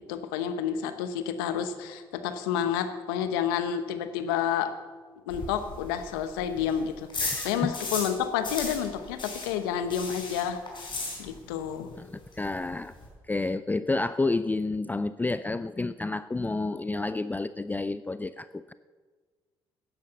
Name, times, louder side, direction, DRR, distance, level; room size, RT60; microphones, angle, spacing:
voice 1, 0.1-4.7 5.3-10.6 11.2-11.9, left 9 dB, 85° left, 10 dB, 0.9 m, -30 dB
sound 1, 5.3-8.2 8.4-11.6 11.9-12.0 12.3-12.4 12.6-13.1, left 3 dB, 45° left, 4.7 m, -35 dB
voice 2, 7.2-7.8 12.0-12.9 13.3-18.7, left 3 dB, 15° left, 14 dB, 0.4 m, -30 dB
11.5 x 10.0 x 6.6 m, 1.4 s
hypercardioid pair, 50°, 12 cm